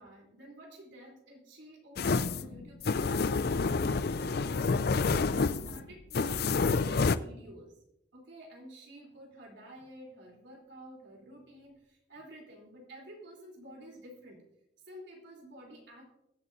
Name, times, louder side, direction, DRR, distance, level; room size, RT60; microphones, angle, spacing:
voice 1, 0.0-4.7 5.3-7.8 8.1-14.5 14.8-16.0, right 1 dB, 70° right, -1 dB, 3.7 m, -51 dB
sound 1, 2.0-7.2, left 4 dB, 55° left, 0.5 m, -28 dB
21.5 x 8.3 x 2.7 m, 0.83 s
head